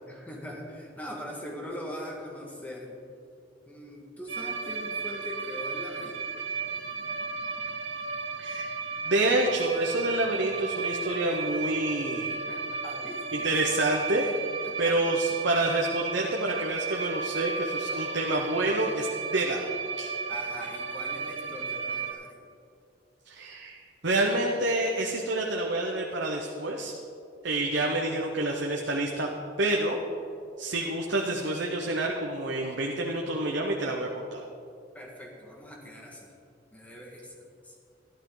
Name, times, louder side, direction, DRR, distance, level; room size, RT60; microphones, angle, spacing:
voice 1, 0.1-3.0 3.6-6.2 12.5-13.8 14.6-15.0 20.3-22.4 34.9-36.3 36.7-37.8, equal, 10° left, -1 dB, 1.7 m, -42 dB
sound 1, 4.3-22.1, right 5 dB, 85° right, 1.8 m, -34 dB
voice 2, 9.1-12.4 13.3-14.3 14.8-19.7 20.0-20.1 23.3-23.8 24.0-26.9 27.4-29.3 29.6-30.0 30.6-34.4, right 2 dB, 65° right, 0 dB, 1.0 m, -28 dB
14.0 x 12.5 x 3.9 m, 2.5 s
head